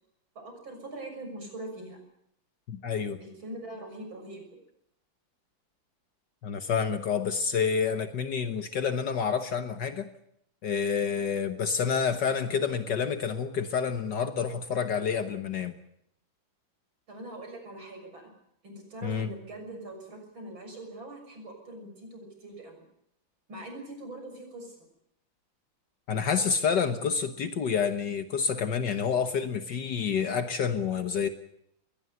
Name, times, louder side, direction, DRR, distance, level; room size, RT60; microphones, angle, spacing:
voice 1, 0.4-2.0 3.2-4.4 17.1-18.3 18.6-22.8 23.5-24.8, right 1 dB, 90° right, 4 dB, 7.4 m, -42 dB
voice 2, 2.7-3.2 6.4-10.1 10.6-15.7 19.0-19.3 26.1-31.3, left 6 dB, 65° left, 9 dB, 1.8 m, -28 dB
21.5 x 19.0 x 8.1 m, 0.72 s
omnidirectional pair, 2.1 m